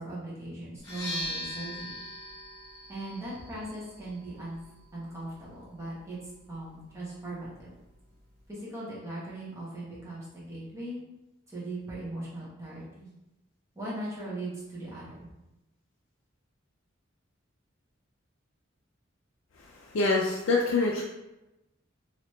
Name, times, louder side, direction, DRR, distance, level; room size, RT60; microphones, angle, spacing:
voice 1, 0.0-2.0 2.9-4.6 4.9-6.2 6.5-7.7 8.5-11.0 11.5-13.1 13.7-15.3, right 1 dB, 15° right, -8 dB, 1.1 m, -39 dB
sound 1, 0.8-8.5, left 1 dB, 25° left, 1.2 m, -43 dB
voice 2, 19.6-21.0, left 3 dB, 85° left, -2 dB, 0.4 m, -26 dB
3.1 x 2.8 x 3.1 m, 0.98 s
head